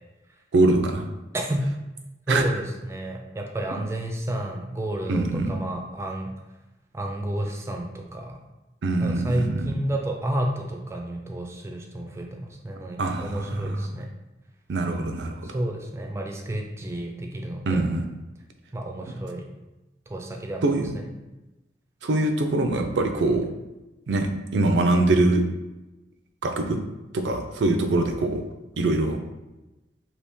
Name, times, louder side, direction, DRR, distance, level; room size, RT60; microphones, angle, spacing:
voice 1, 0.5-1.1 2.3-2.5 5.1-5.6 8.8-9.7 13.0-13.9 14.7-15.4 17.7-18.0 20.6-20.9 22.0-23.5 24.1-25.4 26.4-26.8 27.1-28.4 28.8-29.2, right 2 dB, 90° right, 6 dB, 0.4 m, -23 dB
voice 2, 2.3-6.3 6.9-8.3 9.0-14.1 15.4-17.8 18.7-19.4 20.1-20.6 20.9-21.0, right 1 dB, 15° right, 2 dB, 0.4 m, -31 dB
2.9 x 2.7 x 3.5 m, 1.0 s
head